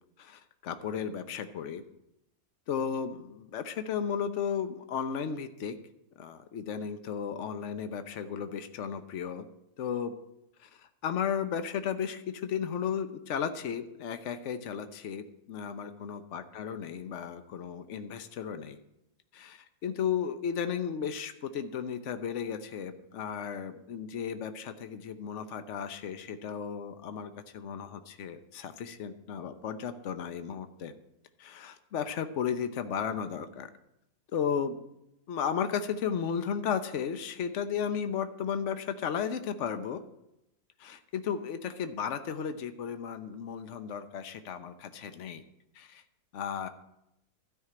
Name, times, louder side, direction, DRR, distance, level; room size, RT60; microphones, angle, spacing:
voice 1, 0.2-1.8 2.7-5.7 6.2-9.4 9.8-10.1 10.6-18.8 19.3-30.9 31.4-33.7 34.3-34.8 35.3-40.0 40.8-45.4 45.8-46.0 46.3-46.7, left 7 dB, 60° left, 9 dB, 1.1 m, -34 dB
12.5 x 5.9 x 8.7 m, 0.85 s
omnidirectional pair, 1.5 m